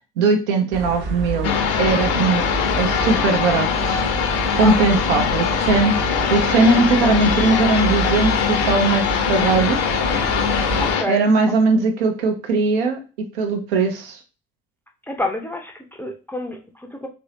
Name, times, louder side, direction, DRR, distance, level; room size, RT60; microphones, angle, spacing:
voice 1, 0.2-2.5 2.8-4.0 4.5-9.9 11.1-14.2, right 3 dB, 65° right, 5 dB, 0.7 m, -20 dB
sound 1, 0.7-11.0, right 3 dB, 40° right, 0.9 m, -29 dB
sound 2, 1.4-11.0, left 7 dB, 55° left, 0.6 m, -22 dB
voice 2, 4.6-5.0 10.8-11.8 15.1-17.1, left 1 dB, 5° left, 3 dB, 0.5 m, -29 dB
3.0 x 2.6 x 3.0 m, 0.34 s
figure-of-eight pair, 55°, 29 cm